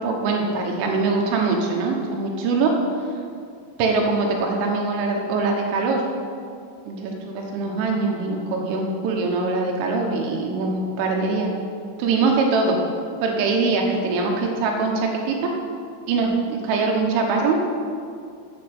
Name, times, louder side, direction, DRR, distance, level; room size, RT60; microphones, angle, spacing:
voice 1, 0.0-2.7 3.8-6.0 6.9-11.5 12.0-12.8 13.2-15.5 16.1-17.6, right 3 dB, 80° right, 1 dB, 3.7 m, -23 dB
9.1 x 7.8 x 6.6 m, 2.3 s
omnidirectional pair, 5.7 m